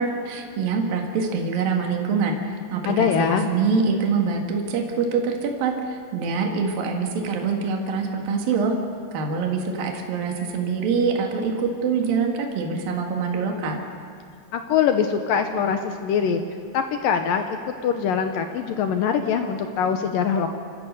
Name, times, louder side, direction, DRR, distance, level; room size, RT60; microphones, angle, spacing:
voice 1, 0.0-2.4 2.7-8.7 9.1-13.8, right 5 dB, 65° right, 2 dB, 3.4 m, -24 dB
voice 2, 2.9-3.5 14.5-16.4 16.7-20.5, left 7 dB, 75° left, 7 dB, 2.2 m, -23 dB
27.0 x 14.5 x 6.7 m, 2.5 s
omnidirectional pair, 4.7 m